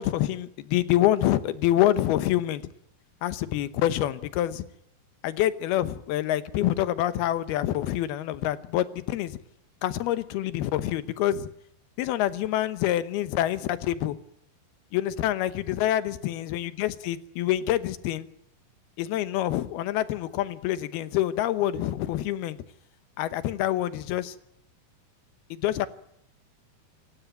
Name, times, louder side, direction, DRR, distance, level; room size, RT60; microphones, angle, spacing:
voice 1, 0.0-2.6 3.2-4.7 5.2-9.4 9.8-11.5 12.0-14.2 14.9-18.3 19.0-22.6 23.2-24.4 25.5-25.9, left 13 dB, 80° left, 3.0 m, -26 dB
27.5 x 15.5 x 9.3 m
omnidirectional pair, 4.5 m